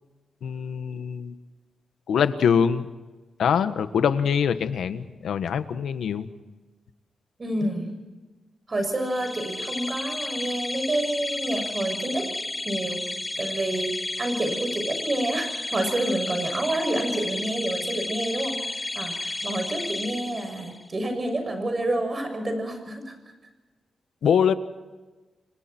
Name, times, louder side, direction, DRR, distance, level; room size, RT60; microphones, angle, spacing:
voice 1, 0.4-1.4 2.1-2.8 3.4-6.3 24.2-24.5, left 7 dB, 85° left, 10 dB, 1.4 m, -23 dB
voice 2, 7.4-7.9 8.7-12.3 12.6-13.0 13.4-23.1, right 1 dB, 30° right, 6 dB, 6.8 m, -28 dB
sound 1, 9.0-20.9, left 2 dB, 15° left, 1.4 m, -32 dB
29.5 x 25.0 x 4.5 m, 1.2 s
wide cardioid pair, 120°, 0 cm